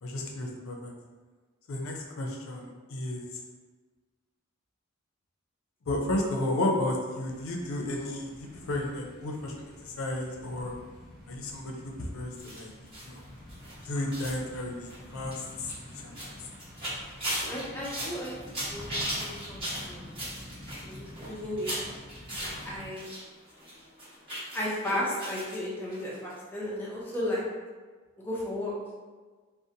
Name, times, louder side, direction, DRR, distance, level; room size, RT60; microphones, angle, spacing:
voice 1, 0.0-0.9 1.7-3.2 5.9-9.5 9.8-10.7 11.3-12.7 13.0-13.2 13.8-16.3, left 1 dB, 80° left, 0 dB, 0.4 m, -33 dB
sound 1, 7.3-22.9, left 1 dB, 50° right, 0.9 m, -48 dB
sound 2, 12.4-23.2 23.5-25.6 25.9-26.0 26.3-26.4, equal, 25° right, 1.1 m, -38 dB
voice 2, 17.5-18.8 19.1-20.0 20.8-21.7 22.6-23.1 24.5-27.4 28.2-28.7, left 1 dB, 10° left, -6 dB, 0.4 m, -34 dB
2.6 x 2.1 x 2.7 m, 1.4 s
head